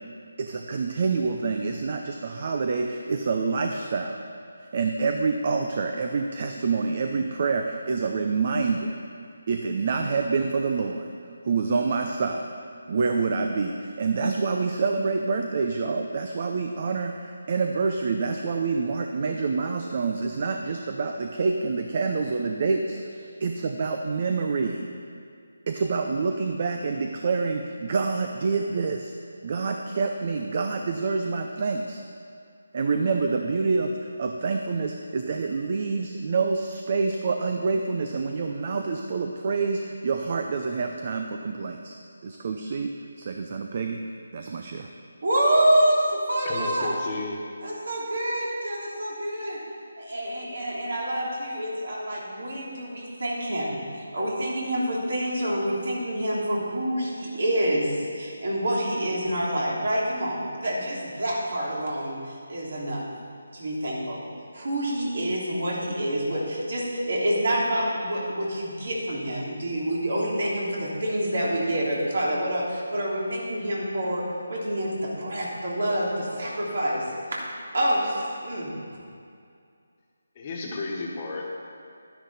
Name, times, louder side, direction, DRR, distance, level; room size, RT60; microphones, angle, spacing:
voice 1, 0.4-4.2 4.6-8.9 9.5-11.1 11.4-12.5 12.9-24.8 25.7-29.1 29.4-32.0 32.7-42.0 42.2-44.0 44.3-44.9, right 4 dB, 40° right, 4 dB, 0.6 m, -27 dB
voice 2, 45.2-46.9 47.6-49.6 50.0-53.8 54.1-63.0 63.5-64.2 64.5-74.2 74.5-77.0 77.3-77.4 77.7-78.7, right 1 dB, 65° right, -5 dB, 3.2 m, -27 dB
voice 3, 46.4-47.4 80.3-81.5, left 2 dB, 30° left, -1 dB, 1.4 m, -32 dB
11.0 x 10.0 x 4.2 m, 2.3 s
figure-of-eight pair, 160°, 0 cm